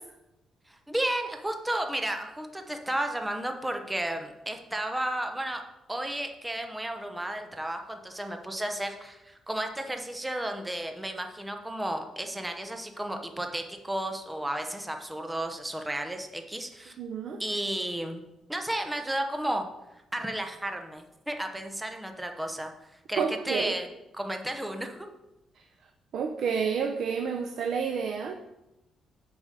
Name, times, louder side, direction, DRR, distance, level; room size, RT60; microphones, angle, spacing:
voice 1, 0.7-5.6 5.9-16.9 17.4-18.2 18.5-19.7 20.1-22.7 23.1-23.9 24.1-25.1, right 1 dB, 10° right, 5 dB, 0.9 m, -33 dB
voice 2, 17.0-17.4 23.2-23.8 26.1-28.3, right 6 dB, 70° right, 5 dB, 0.7 m, -29 dB
7.2 x 5.0 x 6.7 m, 0.94 s
cardioid pair, 115°, 0 cm